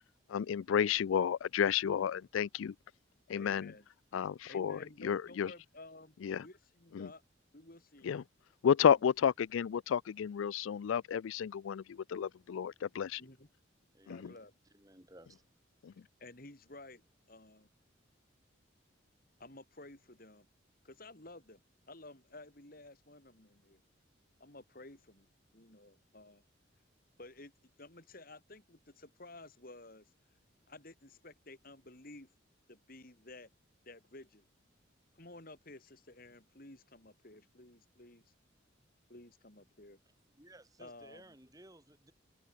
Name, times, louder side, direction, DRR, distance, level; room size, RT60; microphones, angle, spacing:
voice 1, 0.3-2.7 3.3-3.7 4.1-5.5 6.2-6.4 6.9-7.1 8.0-8.2 8.6-13.2 15.8-15.9, left 8 dB, 90° left, 0.4 m, -31 dB
voice 2, 3.3-3.9 4.5-7.2 7.5-8.1 13.2-13.5 14.1-14.5 16.2-17.7 19.4-20.5 20.8-21.6 21.9-23.8 24.4-25.3 25.5-26.4 27.2-27.5 27.8-30.1 30.7-32.3 32.7-33.5 33.8-34.5 35.1-38.3 39.1-40.0 40.8-41.4, left 2 dB, 45° left, 3.2 m, -53 dB
voice 3, 13.9-14.4 14.7-15.4 40.4-42.1, right 1 dB, 20° right, 3.6 m, -57 dB
head